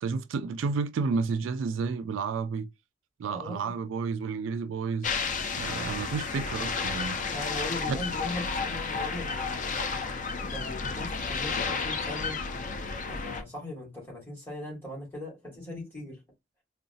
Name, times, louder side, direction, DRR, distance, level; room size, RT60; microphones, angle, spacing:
voice 1, 0.0-2.7 3.2-5.1 5.5-7.2 7.9-8.0, right 5 dB, 90° right, 0.3 m, -31 dB
voice 2, 3.3-3.7 7.3-9.7 10.4-12.4 13.1-16.2, left 1 dB, 10° left, 2.2 m, -39 dB
sound 1, 5.0-13.4, left 4 dB, 40° left, 0.5 m, -32 dB
3.8 x 2.2 x 2.6 m
head